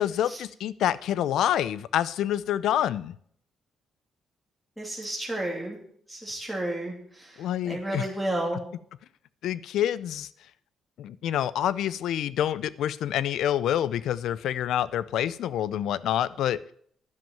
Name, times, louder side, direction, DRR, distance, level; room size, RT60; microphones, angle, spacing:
voice 1, 0.0-3.2 7.4-8.1 9.4-10.3 11.0-16.6, left 11 dB, 80° left, 18 dB, 0.5 m, -27 dB
voice 2, 4.8-5.8 6.1-8.6, right 1 dB, ahead, -1 dB, 2.9 m, -32 dB
10.5 x 7.2 x 7.7 m, 0.63 s
cardioid pair, 90°, 0 cm